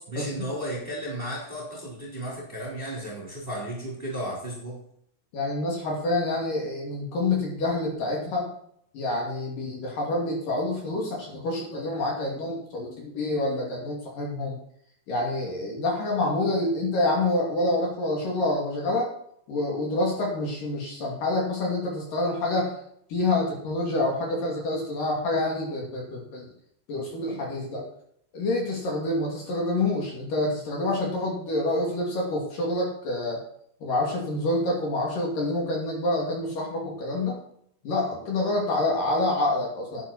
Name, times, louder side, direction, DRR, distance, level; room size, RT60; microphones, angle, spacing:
voice 1, 0.1-4.8, right 1 dB, 15° right, -4 dB, 3.2 m, -34 dB
voice 2, 5.3-8.5 8.9-14.6 15.1-19.1 19.5-22.8 23.1-26.5 26.9-27.9 28.3-33.4 33.8-37.4 37.8-40.0, left 2 dB, 55° left, -1 dB, 3.8 m, -27 dB
11.0 x 9.5 x 4.2 m, 0.69 s
omnidirectional pair, 5.0 m